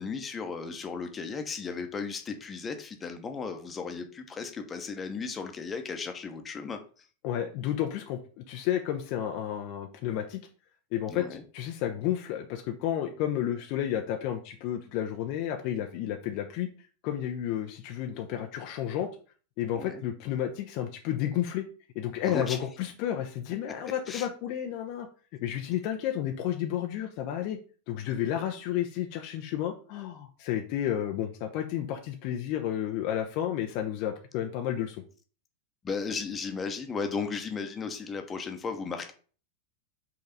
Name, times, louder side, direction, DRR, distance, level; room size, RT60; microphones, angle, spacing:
voice 1, 0.0-7.0 11.1-11.4 19.7-20.0 22.2-22.6 24.1-24.3 35.8-39.1, left 5 dB, 20° left, 6 dB, 1.1 m, -35 dB
voice 2, 7.2-10.4 10.9-16.7 17.0-19.1 19.6-21.6 21.9-25.1 25.4-27.6 27.9-35.0, left 11 dB, 45° left, 4 dB, 0.8 m, -31 dB
5.6 x 3.9 x 5.4 m, 0.40 s
figure-of-eight pair, 90°, 0 cm